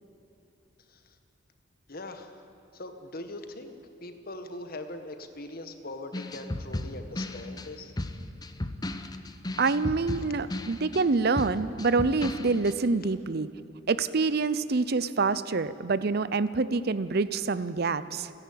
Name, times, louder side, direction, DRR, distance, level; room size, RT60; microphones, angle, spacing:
voice 1, 1.9-2.4 2.7-3.7 4.0-7.9, left 2 dB, 50° left, 7 dB, 1.6 m, -41 dB
sound 1, 6.1-12.7, left 1 dB, 20° left, 0.8 m, -35 dB
voice 2, 9.6-13.5 13.9-18.3, right 4 dB, 50° right, 15 dB, 0.6 m, -26 dB
29.5 x 10.5 x 8.6 m, 3.0 s
head